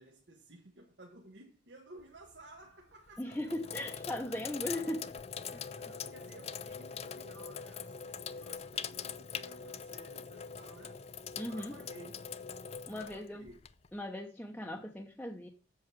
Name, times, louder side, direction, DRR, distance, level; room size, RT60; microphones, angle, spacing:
voice 1, 0.0-3.7 5.5-11.1 11.5-12.3 12.9-13.6, right 1 dB, 70° right, 1.5 m, -55 dB
Sink (filling or washing), 2.0-2.4 3.1-14.0, left 7 dB, 35° left, 0.4 m, -43 dB
voice 2, 3.2-5.2 5.5-5.6 11.4-11.8 12.9-13.5 13.9-15.5, left 1 dB, 5° left, 0.8 m, -38 dB
7.7 x 6.9 x 6.1 m
head